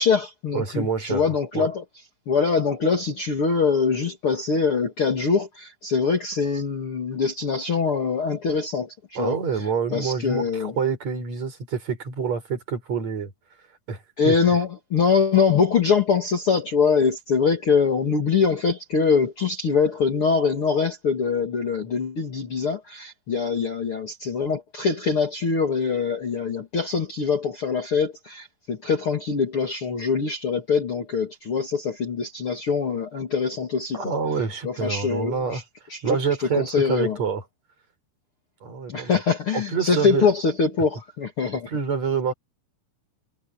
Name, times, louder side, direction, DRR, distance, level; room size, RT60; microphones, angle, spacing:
voice 1, 0.0-1.8 2.3-9.4 9.9-10.7 14.2-34.0 34.6-35.6 35.9-36.2 36.5-37.2 38.9-41.7, left 5 dB, 40° left, 2.8 m, -23 dB
voice 2, 0.5-1.2 1.6-1.7 9.2-13.3 13.9-14.0 14.3-14.4 33.9-35.6 36.0-37.4 38.6-39.2 39.5-40.3 41.7-42.3, right 6 dB, 45° right, 6.9 m, -27 dB
omnidirectional pair, 4.4 m